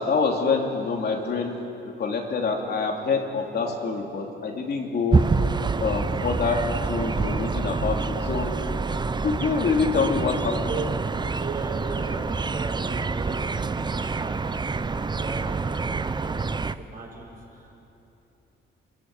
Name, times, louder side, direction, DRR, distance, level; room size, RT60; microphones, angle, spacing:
voice 1, 0.0-1.6 1.8-5.2 5.8-8.5 9.2-10.6, left 4 dB, 55° left, 1 dB, 3.0 m, -26 dB
sound 1, 5.1-16.7, right 4 dB, 20° right, 0.6 m, -27 dB
voice 2, 10.5-10.9 11.3-17.8, right 4 dB, 45° right, -2 dB, 7.3 m, -38 dB
24.5 x 14.5 x 9.1 m, 2.9 s
cardioid pair, 90°, 20 cm